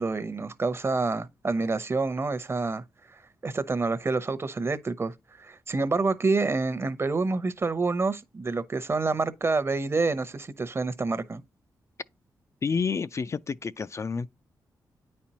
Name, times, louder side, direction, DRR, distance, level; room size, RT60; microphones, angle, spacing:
voice 1, 0.0-2.8 3.4-11.4, right 3 dB, 35° right, 0.8 m, -27 dB
voice 2, 12.6-14.3, left 5 dB, 40° left, 0.3 m, -29 dB
9.4 x 4.3 x 2.9 m
cardioid pair, 75°, 8 cm